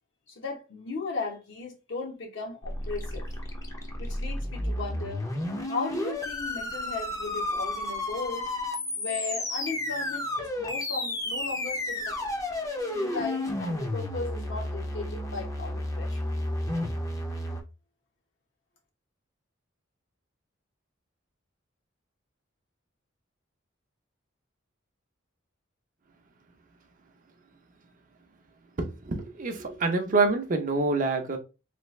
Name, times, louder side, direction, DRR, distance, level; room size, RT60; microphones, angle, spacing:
voice 1, 0.3-3.3 4.0-5.2 5.6-8.5 9.0-12.2 12.9-16.3, left 4 dB, 65° left, 1.0 m, -36 dB
sound 1, 2.6-17.6, left 1 dB, 15° left, 0.6 m, -32 dB
voice 2, 29.0-31.4, right 3 dB, 45° right, 0.6 m, -26 dB
3.3 x 2.4 x 3.1 m
head